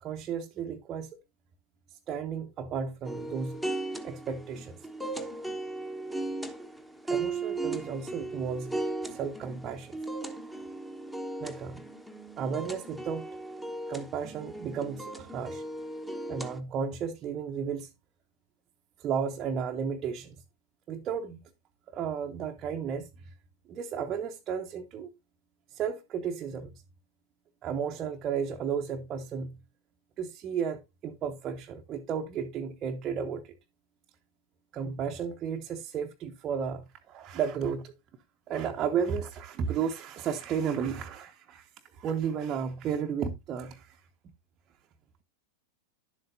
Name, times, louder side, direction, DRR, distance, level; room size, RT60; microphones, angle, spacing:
voice 1, 0.0-1.2 1.9-3.6 4.0-4.8 7.0-10.0 11.4-11.8 12.4-13.3 13.9-15.6 16.3-17.9 19.0-20.4 20.9-21.4 21.9-23.3 23.7-25.1 25.7-26.7 27.6-29.6 30.2-33.5 34.7-37.9 38.5-44.1, right 7 dB, 30° right, 0.7 m, -33 dB
sound 1, 3.0-16.6, right 2 dB, ahead, 1.0 m, -37 dB
11.0 x 7.6 x 2.6 m
figure-of-eight pair, 90°, 0 cm